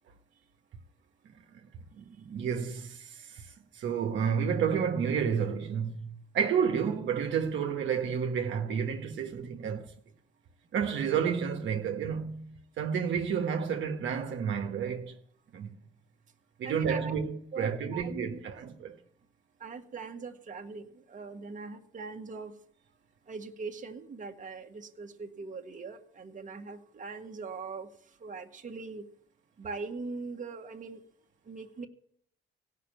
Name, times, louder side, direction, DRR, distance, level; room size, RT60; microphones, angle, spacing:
voice 1, 2.0-3.4 3.7-9.9 10.7-15.1 15.5-15.7 16.6-19.0, right 7 dB, 70° right, 1.4 m, -30 dB
voice 2, 16.6-17.2 17.5-18.4 19.6-22.5 23.3-29.1 29.6-31.0 31.4-31.9, right 4 dB, 40° right, 1.5 m, -41 dB
16.5 x 6.0 x 9.2 m
cardioid pair, 90°, 20 cm